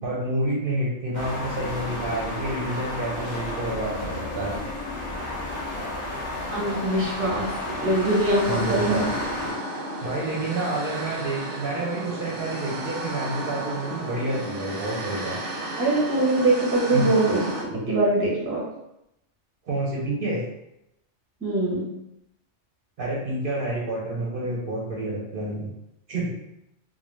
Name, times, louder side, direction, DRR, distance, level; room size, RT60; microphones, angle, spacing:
voice 1, 0.0-4.6 8.5-9.1 10.0-15.4 16.9-17.1 17.7-17.9 19.7-20.4 23.0-25.7 26.1-26.3, right 1 dB, 60° right, -4 dB, 0.6 m, -29 dB
sound 1, 1.1-9.5, left 2 dB, 45° left, 0.7 m, -32 dB
sound 2, 6.4-17.6, right 1 dB, 85° right, 0.9 m, -34 dB
voice 2, 6.5-7.5 7.8-9.1 15.8-17.4 17.9-18.6 21.4-21.8, right 2 dB, 15° right, -5 dB, 0.5 m, -22 dB
2.4 x 2.0 x 3.0 m, 0.85 s
omnidirectional pair, 1.2 m